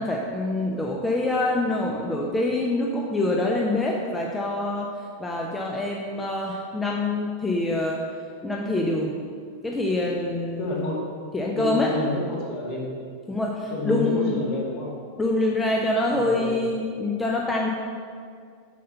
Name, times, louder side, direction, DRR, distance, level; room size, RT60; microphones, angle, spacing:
voice 1, 0.0-4.9 5.2-8.0 8.4-9.1 9.6-10.7 11.3-11.9 13.3-14.4 15.2-17.7, left 2 dB, 10° left, -1 dB, 0.7 m, -25 dB
voice 2, 10.6-11.1 11.5-13.0 13.7-15.0 16.1-16.6, left 3 dB, 45° left, -3 dB, 2.2 m, -29 dB
7.5 x 5.5 x 5.5 m, 2.2 s
figure-of-eight pair, 90°, 0 cm